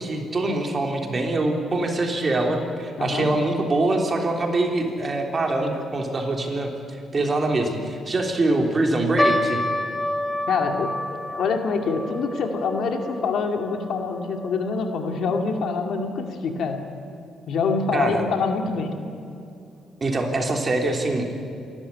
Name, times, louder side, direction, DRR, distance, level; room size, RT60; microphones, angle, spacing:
voice 1, 0.0-6.7 7.1-9.6 17.9-18.2 20.0-21.2, right 2 dB, 35° right, 2 dB, 3.4 m, -24 dB
voice 2, 3.0-3.3 10.5-16.8 17.5-18.9, left 4 dB, 70° left, 4 dB, 2.4 m, -25 dB
sound 1, 9.2-15.7 15.9-16.0 16.8-17.1 17.7-17.8 18.1-18.3, left 1 dB, 10° left, 2.2 m, -29 dB
27.0 x 12.5 x 9.8 m, 2.5 s
cardioid pair, 90°, 0 cm